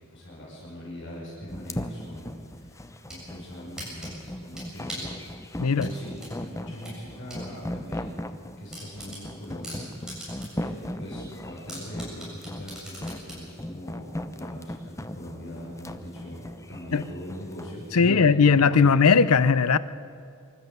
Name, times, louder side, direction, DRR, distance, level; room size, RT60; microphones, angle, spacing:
voice 1, 0.1-2.8 3.1-8.3 8.6-9.9 10.2-18.5 18.8-18.9, equal, 60° left, 5.6 m, -41 dB
sound 1, 1.5-17.8, left 1 dB, 15° left, 0.8 m, -37 dB
sound 2, 2.8-3.2 3.8-5.2 5.8-7.4 7.8-7.9 8.3-8.4 8.7-10.7 11.0-11.1 11.7-13.4, equal, 5° right, 7.4 m, -40 dB
voice 2, 17.9-19.8, left 5 dB, 85° left, 0.7 m, -18 dB
25.0 x 13.0 x 8.0 m
head